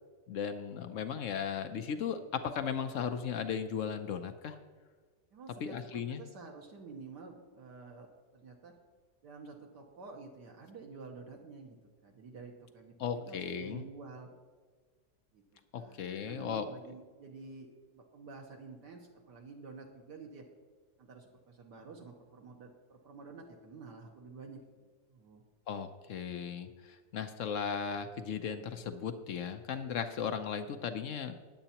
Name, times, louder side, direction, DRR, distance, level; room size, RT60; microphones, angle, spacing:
voice 1, 0.3-4.6 5.6-6.2 13.0-13.8 15.7-16.7 25.7-31.4, left 7 dB, 70° left, 9 dB, 0.7 m, -36 dB
voice 2, 5.3-8.7 9.2-11.8 12.0-14.3 15.3-15.4 15.7-17.7 17.9-20.5 21.0-25.4, right 4 dB, 70° right, 0 dB, 1.6 m, -50 dB
19.5 x 7.9 x 2.9 m, 1.5 s
omnidirectional pair, 2.0 m